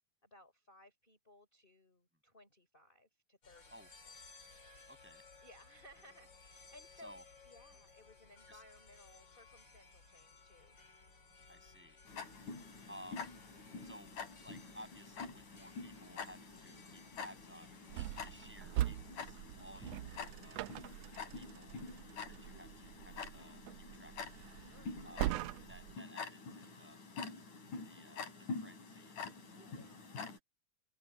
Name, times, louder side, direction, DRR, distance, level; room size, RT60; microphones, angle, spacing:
voice 1, 0.2-3.7 4.0-4.1 5.4-7.2 7.4-10.8 22.0-22.4 24.7-25.3 29.5-30.2, left 1 dB, 15° left, 4.6 m, -61 dB
sound 1, 3.4-19.2, left 4 dB, 40° left, 3.3 m, -60 dB
voice 2, 4.9-5.2 7.0-7.2 8.5-8.6 11.5-12.0 12.9-13.3 13.8-20.7 21.3-21.8 22.3-24.3 25.0-25.3 25.7-27.0 27.8-29.2, equal, 5° right, 7.1 m, -57 dB
Tick-tock, 12.1-30.4, left 5 dB, 85° left, 5.9 m, -47 dB
sound 2, 17.9-26.0, right 14 dB, 85° right, 1.4 m, -42 dB
open air
omnidirectional pair, 3.4 m